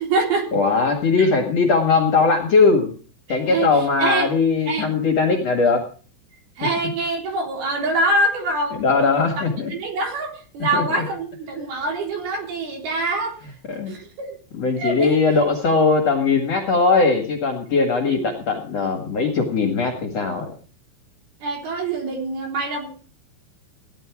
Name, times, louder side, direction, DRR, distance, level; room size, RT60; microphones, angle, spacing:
voice 1, 0.0-0.5 1.2-1.3 3.3-3.7 4.0-4.3 4.7-4.9 6.6-9.3 9.7-13.3 13.9-14.1 14.8-15.2 18.0-18.3 21.4-22.9, right 2 dB, 65° right, 1 dB, 5.5 m, -24 dB
voice 2, 0.5-2.9 3.3-5.8 8.8-9.7 10.7-11.0 13.7-14.0 14.6-20.5, left 4 dB, 50° left, 3 dB, 2.3 m, -19 dB
16.5 x 11.0 x 4.7 m, 0.40 s
omnidirectional pair, 4.9 m